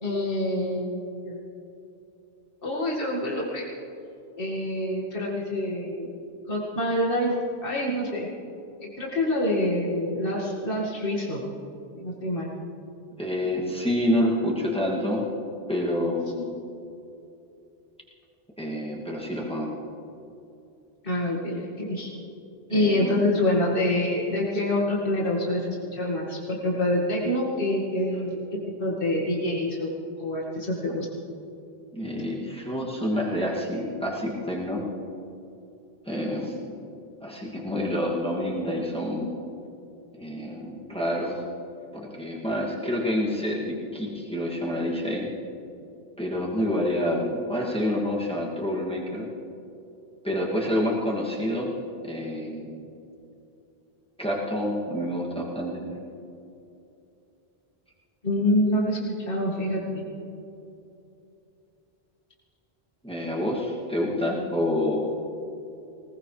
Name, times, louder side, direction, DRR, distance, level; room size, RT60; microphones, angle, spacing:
voice 1, 0.0-1.4 2.6-3.6 4.4-6.1 6.5-7.3 7.6-8.3 8.8-11.5 11.9-12.5 21.0-22.1 22.7-29.9 30.2-31.1 58.2-60.0, left 1 dB, 60° left, -4 dB, 2.4 m, -26 dB
voice 2, 13.2-15.2 15.7-16.6 18.6-19.7 22.7-23.3 31.9-34.8 36.1-36.6 37.2-39.3 40.1-41.4 41.9-45.3 46.2-49.3 50.2-51.7 52.0-52.7 54.2-55.9 63.0-65.1, left 1 dB, 5° left, -4 dB, 2.4 m, -28 dB
20.5 x 19.5 x 3.4 m, 2.8 s
omnidirectional pair, 1.0 m